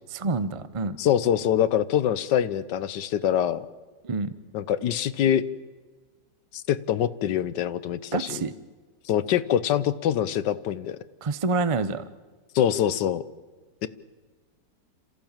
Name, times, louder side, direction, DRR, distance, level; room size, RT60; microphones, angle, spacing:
voice 1, 0.1-1.0 4.0-4.3 8.1-8.5 11.2-12.0, right 3 dB, 55° right, 14 dB, 0.3 m, -27 dB
voice 2, 1.0-3.6 4.5-5.4 6.5-8.4 9.1-11.0 12.5-13.2 13.8-13.9, left 10 dB, 80° left, 16 dB, 1.5 m, -24 dB
27.0 x 15.0 x 8.9 m, 1.4 s
omnidirectional pair, 1.9 m